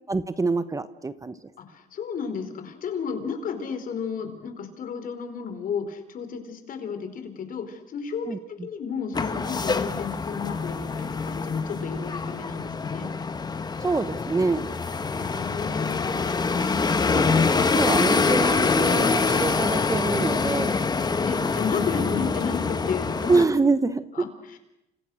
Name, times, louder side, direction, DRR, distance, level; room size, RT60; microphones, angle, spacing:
voice 1, 0.1-1.3 8.3-8.7 13.8-14.7 17.1-20.8 23.3-24.3, right 3 dB, 20° right, 13 dB, 1.2 m, -25 dB
voice 2, 1.6-8.3 8.6-13.1 15.1-16.2 16.9-17.4 21.3-23.4 24.1-24.6, left 6 dB, 55° left, 8 dB, 4.7 m, -32 dB
sound 1, 9.1-23.4, left 4 dB, 25° left, 1.7 m, -25 dB
30.0 x 27.5 x 6.6 m, 0.88 s
cardioid pair, 110°, 17 cm